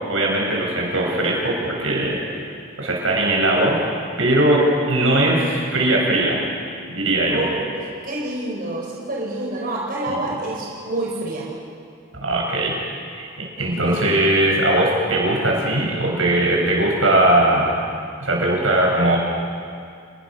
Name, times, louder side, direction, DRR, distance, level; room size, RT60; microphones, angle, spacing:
voice 1, 0.1-2.2 2.8-6.4 6.9-7.4 10.1-10.2 12.2-12.8 13.1-17.8 18.2-19.2, right 1 dB, 90° right, -2 dB, 7.7 m, -19 dB
voice 2, 7.3-11.5 13.6-14.0, right 2 dB, 50° right, -3 dB, 4.7 m, -28 dB
29.5 x 21.5 x 6.5 m, 2.2 s
head